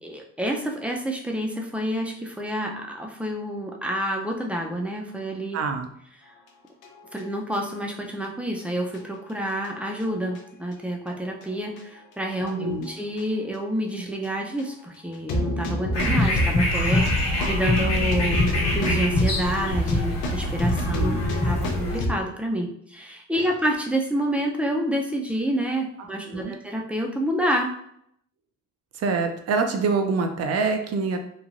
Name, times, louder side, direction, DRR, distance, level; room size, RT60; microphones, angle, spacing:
voice 1, 0.0-5.6 7.1-21.1 21.4-27.7, right 1 dB, 5° right, 1 dB, 0.5 m, -28 dB
voice 2, 5.5-5.9 12.4-12.9 20.9-21.4 26.0-26.5 28.9-31.2, right 4 dB, 55° right, 6 dB, 0.5 m, -26 dB
sound 1, 6.8-7.6 7.9-8.0 8.6-8.7 8.9-9.0 9.5-10.4 11.1-11.4 11.7-11.8 12.5-12.9 13.2-13.3 13.5-13.6 14.2-14.3 14.6-14.7 15.1-22.2, equal, 85° left, 0.6 m, -29 dB
sound 2, 15.9-22.0, left 1 dB, 60° left, 1.1 m, -24 dB
3.1 x 2.2 x 2.5 m, 0.72 s
cardioid pair, 90°, 30 cm